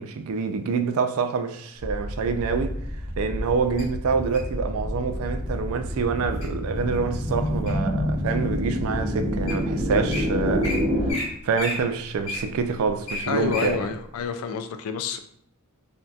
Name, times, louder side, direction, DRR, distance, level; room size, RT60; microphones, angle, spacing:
voice 1, 0.0-2.8 3.2-10.8 11.1-11.2 11.4-13.9, right 5 dB, 70° right, 0.3 m, -26 dB
sound 1, 1.8-11.1, equal, 45° right, 1.1 m, -28 dB
Wild animals, 3.8-4.5 5.2-5.5 6.0-6.5 7.0-7.9 8.5-8.6 9.2-9.3 9.5-9.6 9.9-10.2 10.6-10.8 11.1-11.3 11.5-13.7 14.2-14.3, left 2 dB, 60° left, 1.3 m, -32 dB
voice 2, 13.3-15.2, left 6 dB, 75° left, 0.3 m, -29 dB
3.4 x 2.6 x 2.3 m
head